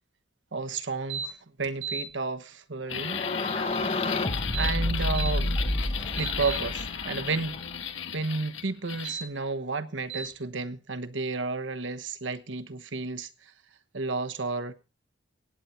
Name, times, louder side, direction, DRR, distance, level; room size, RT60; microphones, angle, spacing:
voice 1, 0.5-3.7 4.5-5.5 6.2-7.6 8.1-13.5 13.9-14.7, right 3 dB, 70° right, 1.2 m, -32 dB
sound 1, 1.1-1.3 1.6-2.0 4.4-5.3 5.8-6.6 8.9-9.2 10.1-10.3, right 6 dB, 90° right, 2.7 m, -35 dB
sound 2, 2.9-9.1, left 8 dB, 80° left, 1.3 m, -35 dB
sound 3, 2.9-7.7, left 1 dB, 30° left, 1.0 m, -30 dB
18.0 x 9.5 x 4.4 m
head